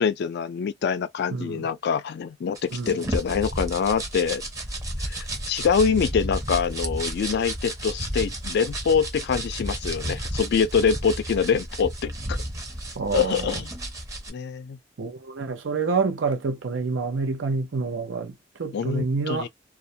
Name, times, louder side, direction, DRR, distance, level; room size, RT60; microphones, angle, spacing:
voice 1, 0.0-4.4 5.1-12.4 13.1-13.7 14.3-14.8 18.7-19.5, left 6 dB, 60° left, 0.3 m, -25 dB
voice 2, 1.3-1.7 2.7-3.0 13.0-13.6 15.0-19.5, right 4 dB, 80° right, 0.6 m, -28 dB
sound 1, 2.6-14.3, right 1 dB, 15° right, 0.6 m, -32 dB
2.2 x 2.1 x 2.7 m
head